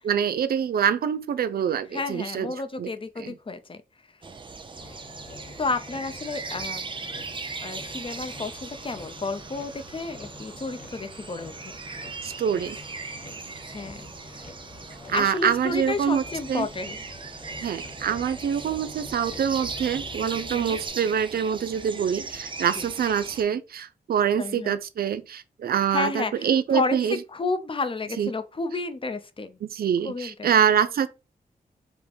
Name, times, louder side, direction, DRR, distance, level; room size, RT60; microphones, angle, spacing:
voice 1, 0.0-2.5 2.8-2.9 3.2-3.3 12.2-12.8 15.1-16.2 16.5-16.7 17.6-27.2 28.2-28.3 29.6-31.1, right 8 dB, 75° right, 0.5 m, -25 dB
voice 2, 1.9-3.8 5.6-6.9 7.6-11.7 13.7-14.5 15.1-17.0 20.5-20.8 22.7-22.8 24.4-24.8 25.9-29.6 30.0-30.5, left 3 dB, 35° left, 0.7 m, -31 dB
sound 1, 4.2-23.4, right 4 dB, 30° right, 0.6 m, -39 dB
Motor vehicle (road), 4.8-20.9, left 3 dB, 55° left, 1.3 m, -46 dB
5.4 x 2.2 x 4.4 m
wide cardioid pair, 95°, 16 cm